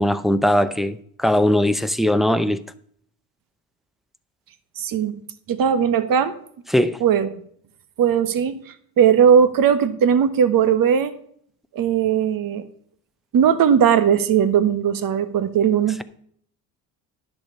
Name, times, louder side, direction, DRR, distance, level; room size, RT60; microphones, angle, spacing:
voice 1, 0.0-2.6 6.7-7.0, left 1 dB, ahead, 0.6 m, -19 dB
voice 2, 4.8-5.2 5.5-6.3 7.0-7.4 8.0-11.1 11.7-12.7 13.3-16.0, right 8 dB, 50° right, 1.3 m, -18 dB
10.5 x 6.6 x 5.5 m
supercardioid pair, 90°, 44 cm